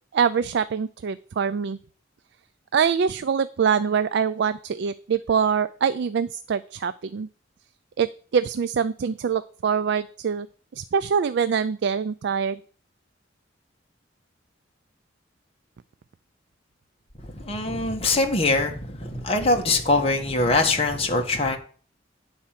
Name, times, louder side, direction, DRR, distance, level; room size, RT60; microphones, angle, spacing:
voice 1, 0.1-1.8 2.7-7.3 8.0-10.5 10.7-12.6, right 6 dB, 60° right, 0.4 m, -24 dB
voice 2, 17.2-21.6, left 2 dB, 30° left, 1.5 m, -23 dB
9.7 x 4.4 x 7.4 m
head